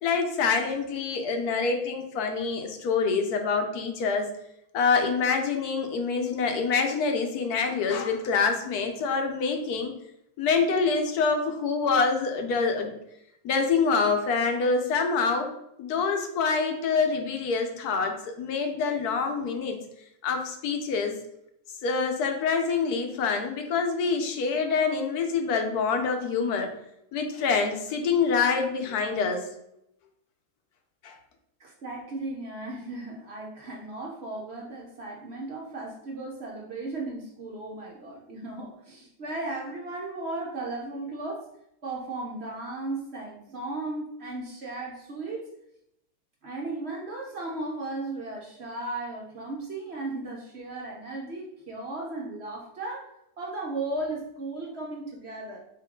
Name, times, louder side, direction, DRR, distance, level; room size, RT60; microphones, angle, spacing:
voice 1, 0.0-4.3 4.7-9.9 10.4-12.9 13.4-15.5 15.8-19.8 20.2-21.1 21.8-26.7 27.1-29.5 31.0-31.2, left 5 dB, 80° left, 4 dB, 1.2 m, -26 dB
voice 2, 31.6-41.5 41.8-45.5 46.4-55.6, right 2 dB, 50° right, -1 dB, 0.9 m, -36 dB
4.5 x 3.1 x 3.7 m, 0.77 s
omnidirectional pair, 1.7 m